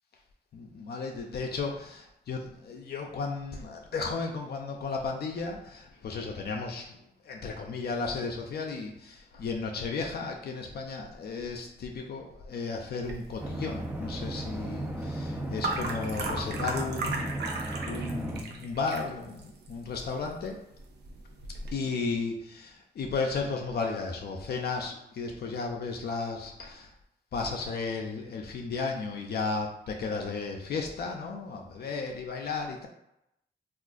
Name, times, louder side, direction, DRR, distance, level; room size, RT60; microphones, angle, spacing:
voice 1, 0.5-7.0 7.2-20.6 21.7-26.9 27.3-32.9, left 4 dB, 70° left, 1 dB, 0.5 m, -34 dB
sound 1, 13.0-21.7, right 3 dB, 85° right, 0.5 m, -38 dB
sound 2, 13.4-18.4, right 1 dB, 10° right, 0.4 m, -35 dB
3.6 x 2.4 x 2.4 m, 0.83 s
cardioid pair, 65°, 17 cm